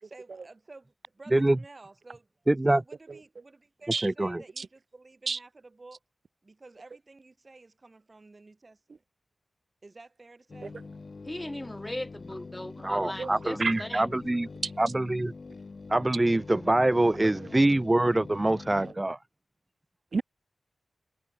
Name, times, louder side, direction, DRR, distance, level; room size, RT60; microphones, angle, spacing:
voice 1, 0.0-2.3 2.7-6.0 6.4-9.0 9.8-10.7, right 3 dB, 45° right, 2.0 m, -52 dB
voice 2, 2.5-2.8 4.0-4.4 12.8-14.5 14.8-15.3 15.9-19.2, right 1 dB, 25° right, 0.6 m, -24 dB
voice 3, 3.9-4.1 4.6-4.7 5.3-5.4 10.6-10.7 13.2-13.3 13.6-13.7 14.6-14.7 17.2-17.5 20.1-20.2, right 4 dB, 65° right, 0.6 m, -30 dB
sound 1, 10.5-18.9, left 4 dB, 55° left, 2.3 m, -44 dB
voice 4, 11.3-14.2, left 1 dB, 15° left, 0.3 m, -38 dB
cardioid pair, 50°, 0 cm